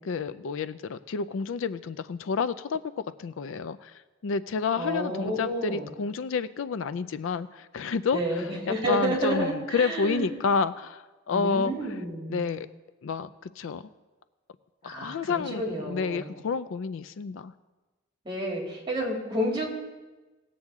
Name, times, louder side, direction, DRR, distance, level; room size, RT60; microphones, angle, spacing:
voice 1, 0.0-2.8 3.2-11.7 12.3-12.7 13.0-13.8 14.8-17.5, left 5 dB, 70° left, 14 dB, 0.4 m, -30 dB
voice 2, 4.7-5.9 8.1-10.3 11.3-12.5 14.8-16.3 18.2-19.7, right 1 dB, 25° right, -2 dB, 2.8 m, -30 dB
18.5 x 7.7 x 3.6 m, 1.2 s
head